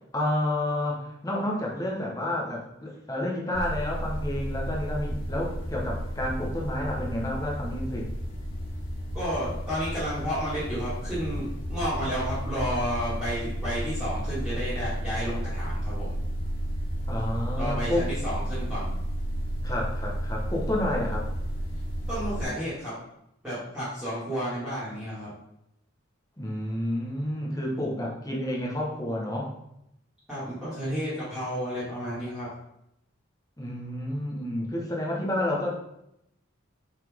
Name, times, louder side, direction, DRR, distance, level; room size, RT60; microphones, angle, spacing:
voice 1, 0.1-8.1 17.1-18.1 19.6-21.3 26.4-29.5 33.6-35.8, left 1 dB, 15° left, -2 dB, 1.3 m, -30 dB
sound 1, 3.5-22.4, equal, 75° left, 2.2 m, -32 dB
voice 2, 9.1-16.2 17.6-18.9 22.1-22.9 23.4-25.3 30.3-32.5, equal, ahead, -13 dB, 2.3 m, -31 dB
5.8 x 5.5 x 3.7 m, 0.80 s
head